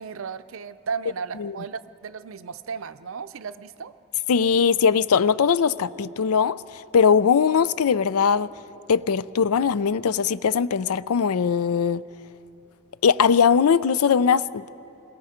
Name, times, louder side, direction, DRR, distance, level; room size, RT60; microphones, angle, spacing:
voice 1, 0.0-3.9, right 5 dB, 65° right, 0.6 m, -34 dB
voice 2, 4.3-6.6 6.9-8.5 8.9-12.0 13.0-14.6, left 6 dB, 80° left, 0.4 m, -20 dB
27.5 x 22.0 x 5.0 m
head